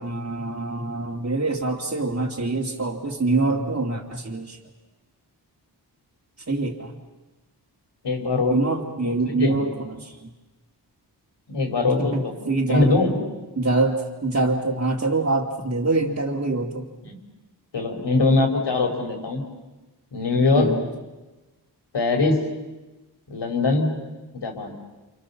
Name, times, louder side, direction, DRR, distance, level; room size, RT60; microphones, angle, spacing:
voice 1, 0.0-4.6 6.5-6.9 8.5-10.3 12.1-12.9 13.6-16.8 20.5-20.8, right 3 dB, 35° right, -3 dB, 2.6 m, -25 dB
voice 2, 8.0-8.6 9.0-9.6 11.5-12.3 12.7-13.1 17.0-17.2 17.7-19.4 20.1-20.7 21.9-22.4 23.3-23.9 24.3-24.8, left 3 dB, 75° left, 3 dB, 5.2 m, -22 dB
29.0 x 28.0 x 7.2 m, 1.1 s
wide cardioid pair, 95°, 43 cm